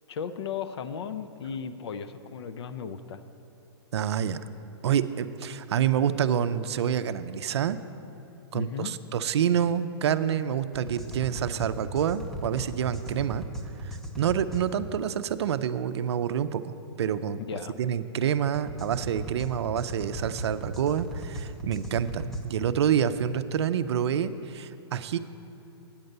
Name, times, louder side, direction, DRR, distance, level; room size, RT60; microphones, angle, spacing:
voice 1, 0.1-3.2 8.5-8.9 17.5-17.7, left 7 dB, 70° left, 12 dB, 0.6 m, -35 dB
voice 2, 3.9-4.4 4.8-7.8 8.5-13.5 13.8-17.4 17.8-25.2, right 9 dB, 75° right, 12 dB, 0.4 m, -27 dB
sound 1, 10.7-14.6 18.5-22.4, right 1 dB, ahead, 0.6 m, -37 dB
8.7 x 5.3 x 7.9 m, 3.0 s
hypercardioid pair, 150°, 14 cm